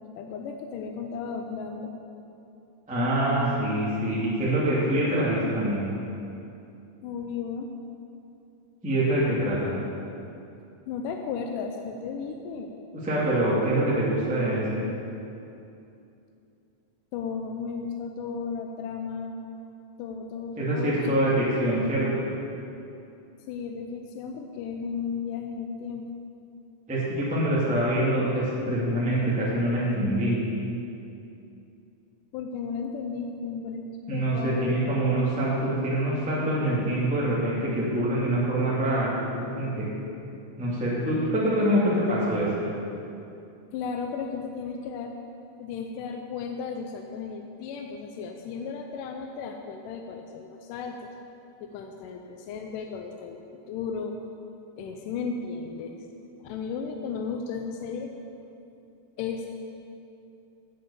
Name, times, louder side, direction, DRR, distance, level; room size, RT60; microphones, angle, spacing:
voice 1, 0.2-1.9 7.0-7.7 10.9-12.7 17.1-19.3 20.0-21.5 23.5-26.1 32.3-34.7 43.7-45.1 45.6-51.1 51.6-54.2 54.8-56.0 56.4-58.1 59.2-59.6, left 5 dB, 80° left, 3 dB, 2.2 m, -34 dB
voice 2, 2.9-5.9 8.8-9.7 13.0-14.8 20.6-22.2 26.9-30.4 34.1-39.9 40.6-42.5, right 1 dB, 5° right, -7 dB, 1.5 m, -25 dB
9.3 x 8.3 x 6.9 m, 2.7 s
omnidirectional pair, 3.9 m